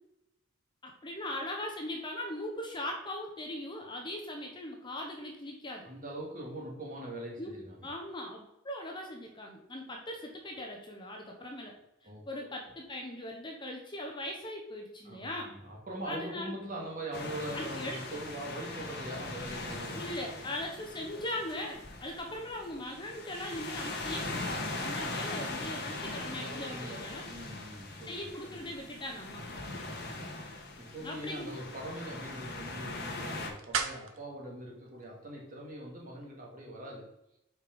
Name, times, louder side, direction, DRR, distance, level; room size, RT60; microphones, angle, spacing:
voice 1, 0.8-5.9 7.4-7.5 7.8-11.7 12.0-15.5 16.0-16.5 17.5-18.0 19.9-27.2 28.1-29.4 31.0-31.6, left 1 dB, 20° left, 1 dB, 1.0 m, -40 dB
voice 2, 5.8-7.9 12.0-12.5 15.0-20.3 26.3-28.2 28.5-28.7 30.8-37.2, right 1 dB, 40° right, -2 dB, 2.1 m, -42 dB
mar llafranc mid perspective, 17.1-33.5, left 2 dB, 50° left, 1.5 m, -40 dB
sound 1, 30.8-35.9, right 6 dB, 70° right, 0.8 m, -42 dB
5.7 x 4.9 x 5.2 m, 0.81 s
head